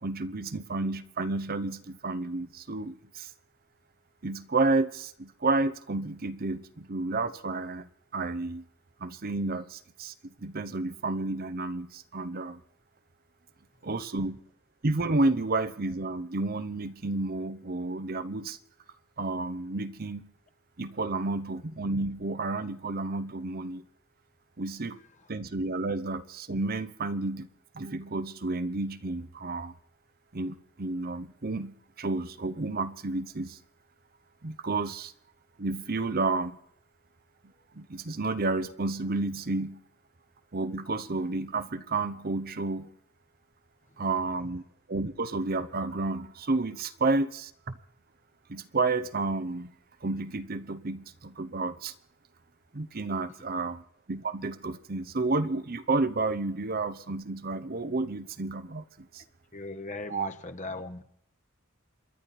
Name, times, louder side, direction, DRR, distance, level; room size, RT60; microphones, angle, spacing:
voice 1, 0.0-3.3 4.2-8.6 9.0-12.6 13.8-14.4 14.8-18.6 19.2-20.2 20.8-23.9 24.6-25.0 25.3-27.5 27.7-29.7 30.3-33.6 34.4-35.1 35.6-36.6 37.8-39.8 40.5-42.9 44.0-44.6 44.9-47.5 48.5-49.7 50.0-51.9 52.7-53.8 54.1-59.2 60.1-60.3, right 3 dB, 45° right, 0.8 m, -31 dB
voice 2, 59.5-61.0, left 2 dB, 35° left, 1.2 m, -38 dB
28.0 x 11.5 x 4.2 m
head